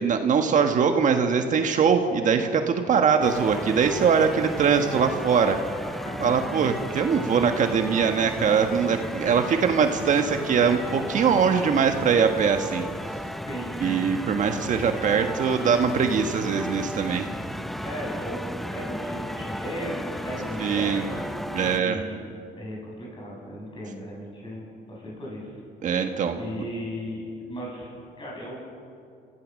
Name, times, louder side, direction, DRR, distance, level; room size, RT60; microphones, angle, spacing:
voice 1, 0.0-5.6 6.2-12.9 13.8-17.3 20.6-21.1 21.5-22.0 25.8-26.6, right 6 dB, 50° right, 5 dB, 1.5 m, -22 dB
sound 1, 3.2-21.8, equal, ahead, 0.6 m, -34 dB
voice 2, 6.0-6.4 13.5-14.0 17.3-17.4 17.8-21.2 21.7-22.2 22.6-25.5 26.0-28.5, equal, 30° left, -4 dB, 7.8 m, -36 dB
28.5 x 15.5 x 6.5 m, 2.4 s
cardioid pair, 110°, 17 cm